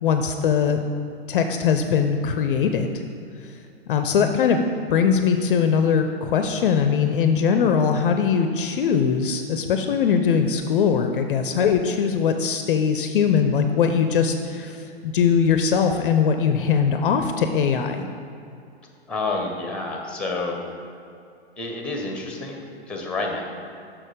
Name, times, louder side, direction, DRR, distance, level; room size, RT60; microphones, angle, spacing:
voice 1, 0.0-0.8 1.3-3.0 3.4-3.5 3.9-4.6 4.9-18.1, left 6 dB, 55° left, 7 dB, 0.5 m, -21 dB
voice 2, 19.1-20.6 21.6-23.4, left 3 dB, 5° left, 1 dB, 1.0 m, -29 dB
6.4 x 5.9 x 5.1 m, 2.5 s
figure-of-eight pair, 110°, 33 cm